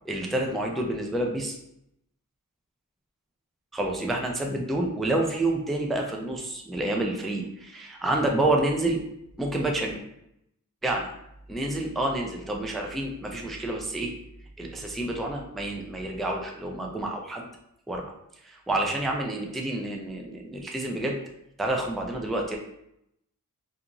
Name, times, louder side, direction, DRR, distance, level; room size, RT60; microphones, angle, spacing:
voice 1, 0.0-1.6 3.7-9.0 9.4-9.9 10.8-11.1 11.5-14.1 14.6-17.5 17.9-21.2 21.6-22.6, right 1 dB, ahead, 1 dB, 0.3 m, -28 dB
2.4 x 2.4 x 2.9 m, 0.78 s
wide cardioid pair, 90°, 34 cm